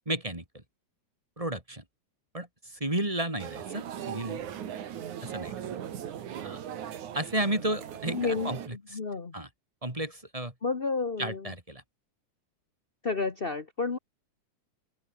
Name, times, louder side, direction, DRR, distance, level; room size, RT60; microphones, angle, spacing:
voice 1, 0.0-0.6 1.4-1.8 2.3-4.4 5.2-5.5 6.4-6.6 7.1-9.0 9.3-9.5 9.8-10.5 11.2-11.8, right 1 dB, 10° right, 3.0 m, -33 dB
sound 1, 3.4-8.7, right 9 dB, 75° right, 3.3 m, -39 dB
voice 2, 8.1-9.3 10.6-11.5 13.0-14.0, left 4 dB, 50° left, 0.6 m, -31 dB
open air
omnidirectional pair, 3.5 m